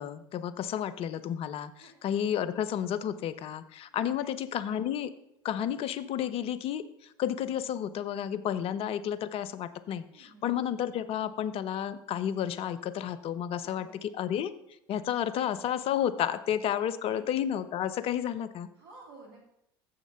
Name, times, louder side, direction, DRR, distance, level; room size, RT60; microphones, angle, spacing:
voice 1, 0.0-5.1 5.4-14.5 14.9-18.7, left 10 dB, 50° left, 14 dB, 0.6 m, -31 dB
voice 2, 3.9-4.3 10.1-10.5 13.5-14.0 17.0-17.2 18.8-19.4, right 2 dB, 75° right, 0 dB, 2.9 m, -53 dB
7.4 x 6.6 x 5.7 m, 0.77 s
hypercardioid pair, 65°, 13 cm